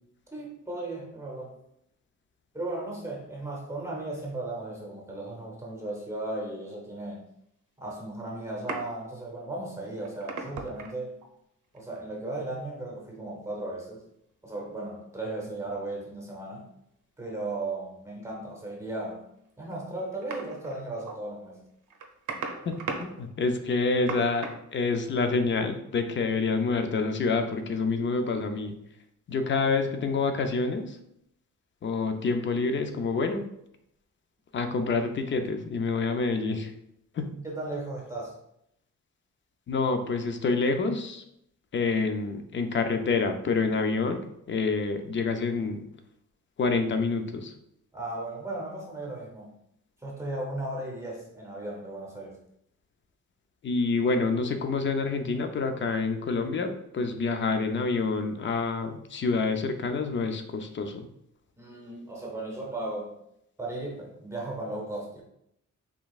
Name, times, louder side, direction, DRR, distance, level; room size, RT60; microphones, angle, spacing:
voice 1, 0.3-1.6 2.5-7.2 7.8-11.2 11.7-14.1 14.4-16.7 17.2-19.3 19.6-21.6 37.4-38.3 47.9-49.5 50.0-52.4 61.6-63.1 63.6-65.2, right 2 dB, 10° right, -2 dB, 0.8 m, -36 dB
sound 1, 8.5-9.1 9.8-11.3 11.7-12.3 15.3-15.4 18.5-18.6 19.7-19.8 20.1-21.2 21.4-21.5 21.8-24.5, right 4 dB, 80° right, 0.7 m, -37 dB
voice 2, 22.6-28.8 29.3-31.0 31.8-33.5 34.5-36.7 37.1-37.3 39.7-41.2 41.7-44.2 44.5-45.8 46.6-47.5 53.6-61.1, left 4 dB, 40° left, 7 dB, 0.4 m, -27 dB
5.1 x 3.5 x 2.3 m, 0.77 s
wide cardioid pair, 165°, 31 cm